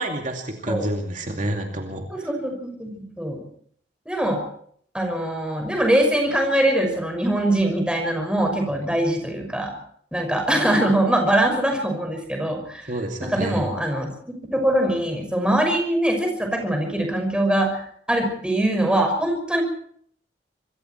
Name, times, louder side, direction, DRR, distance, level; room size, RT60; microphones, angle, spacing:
voice 1, 0.0-2.3 12.9-13.7, right 1 dB, 45° right, 3 dB, 2.5 m, -29 dB
voice 2, 2.1-3.4 4.1-4.4 4.9-9.7 10.1-12.9 13.2-14.1 14.5-17.8 18.1-19.6, right 1 dB, 5° right, 3 dB, 5.9 m, -22 dB
26.0 x 22.5 x 4.5 m, 0.62 s
head